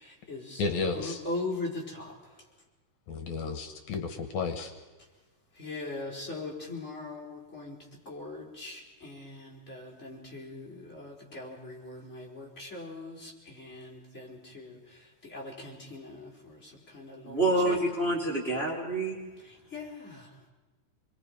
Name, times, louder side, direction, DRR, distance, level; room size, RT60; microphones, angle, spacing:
voice 1, 0.0-2.1 5.5-7.8 8.0-17.8 19.4-20.3, left 2 dB, 20° left, -3 dB, 4.8 m, -40 dB
voice 2, 0.6-1.2 3.1-4.7, left 4 dB, 75° left, 7 dB, 2.6 m, -32 dB
voice 3, 17.2-19.2, right 2 dB, 20° right, -2 dB, 3.1 m, -27 dB
27.0 x 22.0 x 5.4 m, 1.2 s
omnidirectional pair, 3.4 m